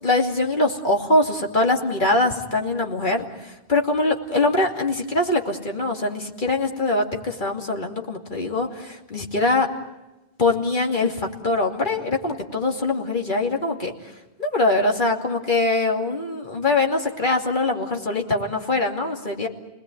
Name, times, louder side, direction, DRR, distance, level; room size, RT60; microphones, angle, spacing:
voice 1, 0.0-9.7 10.4-14.1 14.4-19.5, left 2 dB, 50° left, 1 dB, 2.8 m, -23 dB
30.0 x 20.0 x 9.3 m, 1.0 s
omnidirectional pair, 1.1 m